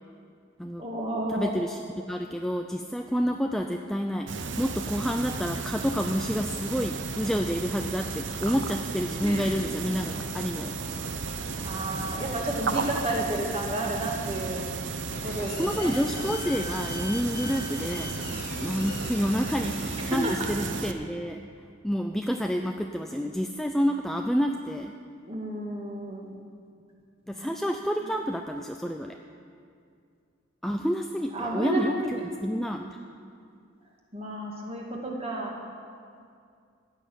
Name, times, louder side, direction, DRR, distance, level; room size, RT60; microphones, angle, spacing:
voice 1, 0.8-1.5 9.2-9.5 11.6-14.6 15.2-16.0 20.2-20.3 25.2-26.3 27.3-27.5 31.3-32.2 34.1-35.6, right 1 dB, 30° right, -1 dB, 2.0 m, -31 dB
voice 2, 1.3-10.7 15.4-18.3 18.6-21.4 21.8-24.9 27.3-29.2 30.6-33.0, equal, ahead, 3 dB, 0.4 m, -29 dB
sound 1, 4.3-20.9, right 4 dB, 60° right, 0.8 m, -34 dB
sound 2, 15.1-20.4, left 3 dB, 50° left, 0.9 m, -40 dB
15.0 x 6.6 x 9.2 m, 2.3 s
head